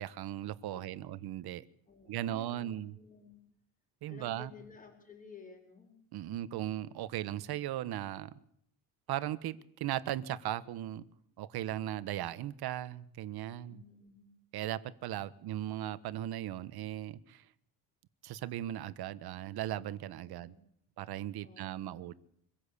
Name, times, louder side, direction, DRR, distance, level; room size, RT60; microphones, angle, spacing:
voice 1, 0.0-1.6 2.1-2.9 4.0-4.5 6.1-8.3 9.1-11.1 11.4-13.8 14.5-17.4 18.2-20.5 21.0-22.1, right 13 dB, 65° right, 14 dB, 1.3 m, -37 dB
voice 2, 0.7-1.1 1.9-3.4 4.1-6.0 13.7-14.3 20.3-20.6 21.4-22.1, left 5 dB, 20° left, 1 dB, 4.9 m, -55 dB
25.0 x 15.5 x 8.4 m, 0.70 s
cardioid pair, 135°, 41 cm